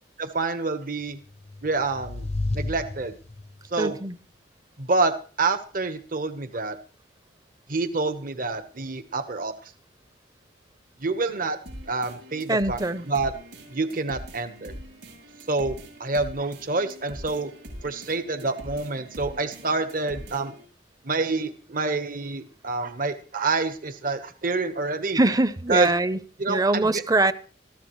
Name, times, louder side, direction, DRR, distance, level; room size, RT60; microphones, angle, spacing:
voice 1, 0.2-1.2 1.6-2.3 2.5-3.1 3.7-4.0 4.8-6.8 7.7-9.7 11.0-11.6 11.9-12.8 13.1-13.3 13.7-14.7 15.5-15.7 16.0-17.5 17.8-20.5 21.0-25.2 25.7-25.9 26.4-27.0, right 3 dB, 50° right, 1.2 m, -27 dB
sound 1, 1.3-3.7, left 2 dB, 35° left, 0.6 m, -32 dB
voice 2, 3.8-4.2 12.5-13.0 25.1-26.2 26.5-27.3, right 2 dB, 20° right, 0.7 m, -23 dB
sound 2, 11.7-20.7, equal, 70° right, 7.9 m, -43 dB
20.5 x 14.0 x 3.2 m
head